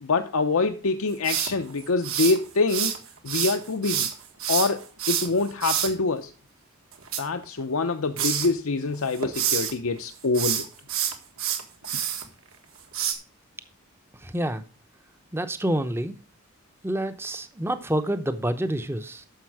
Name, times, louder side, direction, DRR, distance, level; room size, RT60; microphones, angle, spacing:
voice 1, 0.0-2.9 3.2-4.1 4.5-6.3 7.2-10.7, left 3 dB, 70° left, 7 dB, 0.7 m, -25 dB
sound 1, 1.2-3.0 3.3-5.9 6.9-7.9 8.2-8.5 8.9-9.7 10.2-12.2 12.9-13.1, right 9 dB, 70° right, 1.7 m, -27 dB
voice 2, 14.2-14.6 15.3-16.2 16.8-19.3, right 1 dB, 10° right, 10 dB, 0.7 m, -28 dB
10.5 x 6.9 x 4.7 m, 0.35 s
head